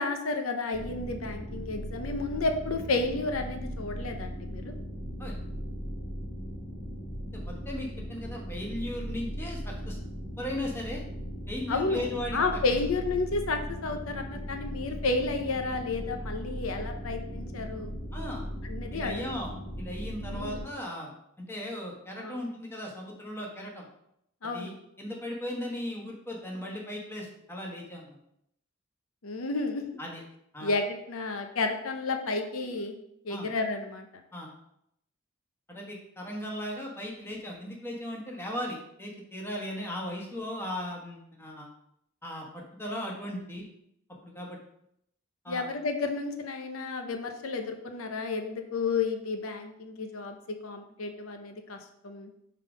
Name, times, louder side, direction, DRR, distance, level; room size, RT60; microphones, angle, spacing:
voice 1, 0.0-4.7 11.7-17.9 18.6-19.3 20.3-20.7 22.2-22.4 24.4-24.7 29.2-30.0 30.6-33.0 33.2-34.1 45.5-50.4 50.6-51.8 52.0-52.3, left 3 dB, 85° left, 5 dB, 0.7 m, -31 dB
sound 1, 0.7-20.6, equal, 30° left, 1.5 m, -38 dB
voice 2, 7.3-10.0 10.4-11.0 11.5-12.4 18.1-18.4 18.9-21.1 21.4-23.9 24.4-28.2 30.0-30.2 30.5-30.7 33.3-33.5 34.3-34.5 35.7-41.7 42.2-43.6 44.2-44.6 45.4-45.7, left 1 dB, 10° left, -1 dB, 1.2 m, -37 dB
5.7 x 3.8 x 4.9 m, 0.75 s
head